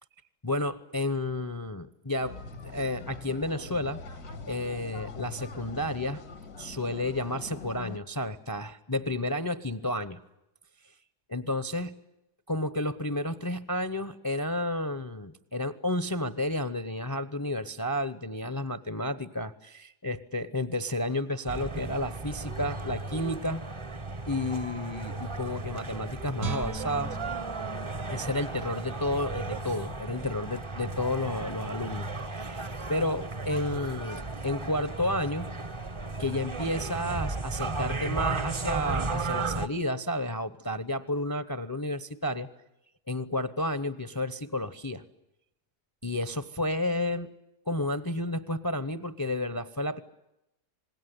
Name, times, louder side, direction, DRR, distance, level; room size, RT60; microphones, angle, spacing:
voice 1, 0.4-2.4 2.7-4.0 4.5-6.2 6.6-10.2 11.3-11.9 12.5-23.6 24.3-27.2 28.1-35.5 36.2-42.5 43.1-45.0 46.0-47.3 47.7-50.0, left 1 dB, 20° left, 13 dB, 0.7 m, -31 dB
sound 1, 2.2-8.0, left 4 dB, 75° left, 2.3 m, -43 dB
sound 2, 21.5-39.7, right 3 dB, 25° right, 0.8 m, -35 dB
Guitar, 26.4-29.5 30.0-30.1, right 4 dB, 60° right, 1.5 m, -41 dB
27.0 x 20.0 x 9.5 m, 0.88 s
omnidirectional pair, 1.6 m